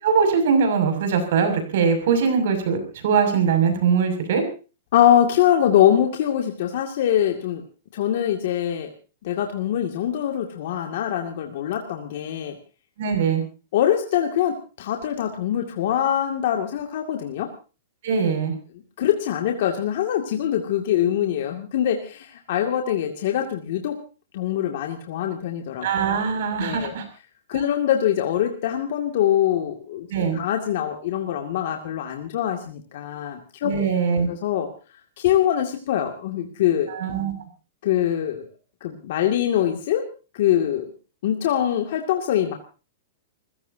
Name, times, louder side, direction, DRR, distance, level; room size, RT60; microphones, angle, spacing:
voice 1, 0.0-4.4 13.0-13.4 18.0-18.5 25.8-27.0 30.1-30.4 33.6-34.3 36.9-37.3, right 6 dB, 60° right, 7 dB, 6.6 m, -21 dB
voice 2, 4.9-7.6 7.9-8.9 9.2-12.5 13.7-17.5 19.0-24.0 24.3-26.1 26.6-26.9 27.5-30.1 30.3-33.7 34.3-34.7 35.2-36.9 37.8-38.5 38.8-40.0 40.3-40.9 41.2-42.5, left 10 dB, 55° left, 3 dB, 2.3 m, -23 dB
29.0 x 16.0 x 2.8 m, 0.35 s
hypercardioid pair, 155°, 0 cm